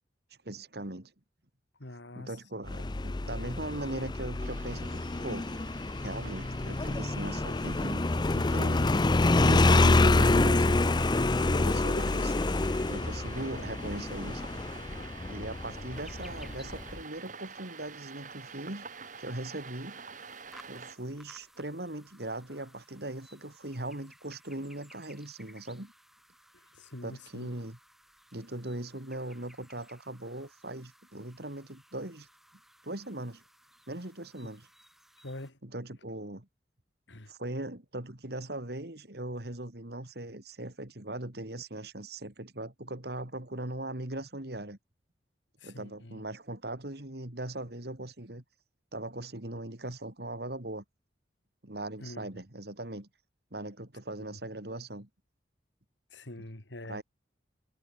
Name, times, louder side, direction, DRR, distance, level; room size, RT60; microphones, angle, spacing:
voice 1, 0.4-1.1 2.1-5.5 5.8-8.9 9.3-10.8 11.4-12.3 12.9-14.5 15.3-18.8 19.2-20.0 20.7-25.9 27.0-27.8 28.3-32.3 32.8-33.4 33.9-34.7 35.6-36.5 37.3-44.8 45.6-48.4 48.9-50.8 51.6-53.1 53.5-55.1 56.8-57.0, right 1 dB, 60° right, 3.0 m, -39 dB
voice 2, 1.8-2.3 11.5-12.1 26.8-27.5 35.2-35.6 37.1-37.3 45.6-46.2 52.0-52.3 54.3-54.4 56.1-57.0, left 1 dB, 85° left, 2.9 m, -44 dB
Motorcycle, 2.7-17.0, left 2 dB, 25° left, 0.5 m, -27 dB
sound 1, 4.4-21.0, right 5 dB, 45° right, 3.7 m, -48 dB
sound 2, 15.9-35.5, equal, ahead, 4.7 m, -59 dB
head